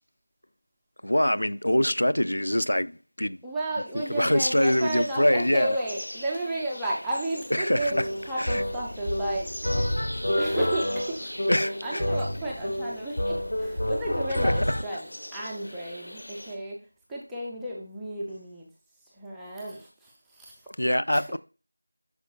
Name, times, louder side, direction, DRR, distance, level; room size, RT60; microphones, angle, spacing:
voice 1, 1.0-3.4 4.1-5.8 7.5-8.1 8.4-8.6 11.5-12.1 14.4-14.6 20.8-21.4, left 1 dB, 85° left, 0.4 m, -24 dB
voice 2, 3.4-9.5 10.4-11.3 11.8-16.8 17.1-18.7 19.2-20.6 21.1-21.4, right 1 dB, ahead, 0.3 m, -33 dB
sound 1, 3.9-16.5, left 1 dB, 65° left, 1.8 m, -42 dB
sound 2, 7.8-14.8, left 1 dB, 45° left, 0.8 m, -29 dB
7.9 x 6.2 x 2.2 m
figure-of-eight pair, 180°, 0 cm